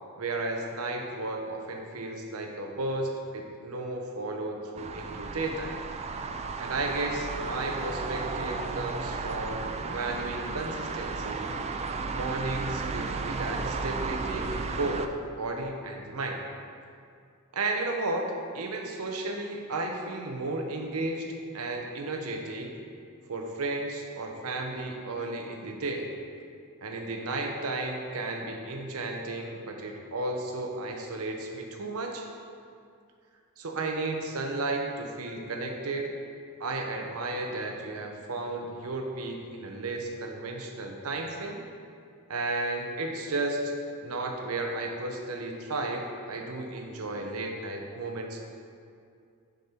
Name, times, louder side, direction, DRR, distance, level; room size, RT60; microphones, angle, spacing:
voice 1, 0.2-5.8 6.6-11.6 12.1-15.1 15.4-16.5 17.5-18.3 18.5-21.3 21.5-22.8 23.3-26.1 26.8-32.3 33.6-36.1 36.6-41.6 42.3-43.7 44.0-48.5, right 2 dB, 80° right, 2 dB, 0.9 m, -33 dB
sound 1, 4.8-15.1, right 4 dB, 30° right, 0.3 m, -34 dB
6.5 x 5.3 x 4.4 m, 2.3 s
head